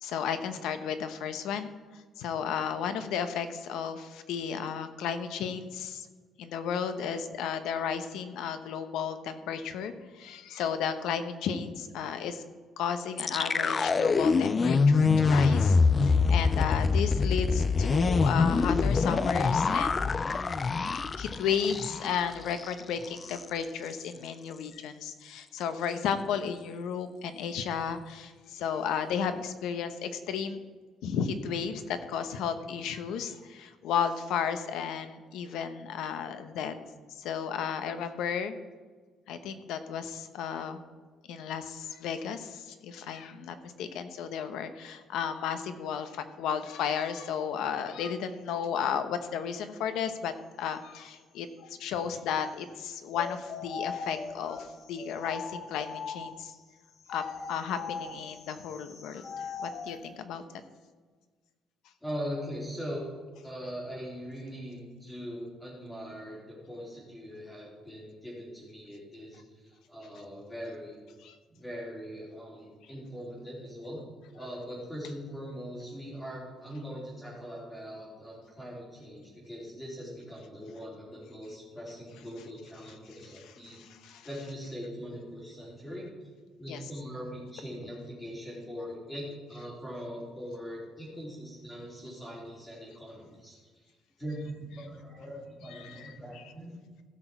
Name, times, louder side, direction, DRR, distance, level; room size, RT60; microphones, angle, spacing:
voice 1, 0.0-6.1 6.4-12.4 12.8-20.1 21.2-30.6 31.0-36.7 37.1-38.5 39.3-40.8 41.3-56.5 57.1-60.4 71.2-71.3 83.6-84.3 86.7-86.8 95.8-96.1, left 7 dB, 80° left, 9 dB, 1.0 m, -33 dB
sound 1, 13.2-22.2 22.5-22.7 23.0-23.4, left 4 dB, 25° left, 0.3 m, -25 dB
sound 2, 53.1-56.5 57.0-60.0, left 5 dB, 50° left, 1.2 m, -40 dB
voice 2, 62.0-63.1 63.4-71.0 71.5-74.0 74.3-86.1 86.6-93.6 94.2-96.7, equal, 10° left, -5 dB, 3.8 m, -41 dB
16.0 x 6.2 x 4.6 m, 1.4 s
cardioid pair, 165°, 0 cm